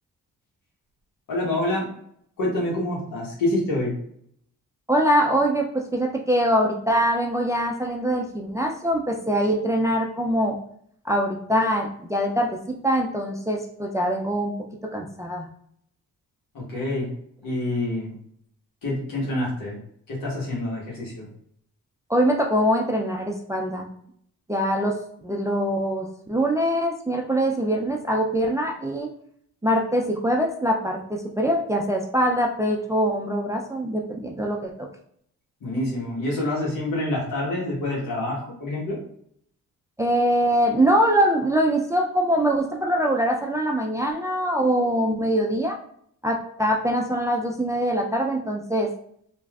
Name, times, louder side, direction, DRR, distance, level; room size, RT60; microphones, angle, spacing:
voice 1, 1.3-1.9 2.4-4.0 16.5-17.1 17.4-18.1 18.8-19.8 20.1-21.3 35.6-39.0, left 1 dB, 75° left, -5 dB, 1.3 m, -27 dB
voice 2, 4.9-10.6 11.0-14.5 14.8-15.5 22.1-23.9 24.5-25.0 25.2-29.1 29.6-34.7 40.0-45.8 46.2-48.9, equal, 10° right, 0 dB, 0.4 m, -23 dB
3.0 x 2.5 x 2.4 m, 0.67 s
cardioid pair, 65°, 34 cm